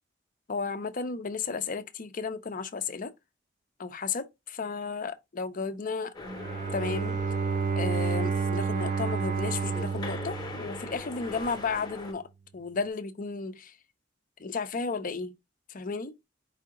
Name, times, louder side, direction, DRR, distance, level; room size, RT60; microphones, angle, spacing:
voice 1, 0.5-3.1 3.8-6.1 6.7-7.2 7.8-12.3 12.5-13.7 14.4-15.3 15.7-16.1, left 4 dB, 45° left, 0.6 m, -33 dB
sound 1, 6.1-12.1, left 3 dB, 20° left, 0.9 m, -42 dB
Bowed string instrument, 6.3-11.3, right 5 dB, 40° right, 0.4 m, -30 dB
4.9 x 2.8 x 3.6 m
head